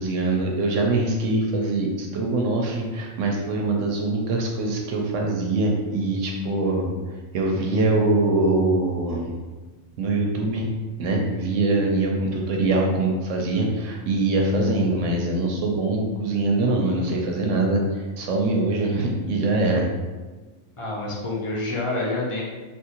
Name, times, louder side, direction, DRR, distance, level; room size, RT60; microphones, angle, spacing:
voice 1, 0.0-6.9 7.3-9.3 10.0-10.7 11.0-17.8 18.2-19.9, right 2 dB, 70° right, 0 dB, 0.9 m, -23 dB
voice 2, 20.8-22.4, left 2 dB, 35° left, -4 dB, 0.5 m, -27 dB
3.5 x 2.6 x 2.8 m, 1.3 s
omnidirectional pair, 1.4 m